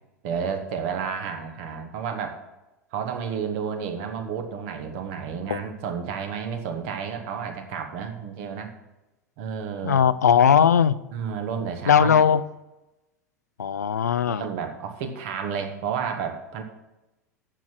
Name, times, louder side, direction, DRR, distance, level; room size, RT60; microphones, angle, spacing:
voice 1, 0.2-2.4 2.9-8.7 9.4-10.0 11.1-12.3 14.3-16.6, right 6 dB, 55° right, 6 dB, 1.5 m, -31 dB
voice 2, 9.8-10.9 11.9-12.4 13.6-14.4, left 7 dB, 75° left, 16 dB, 0.4 m, -18 dB
9.0 x 6.0 x 7.7 m, 1.0 s
figure-of-eight pair, 80°, 9 cm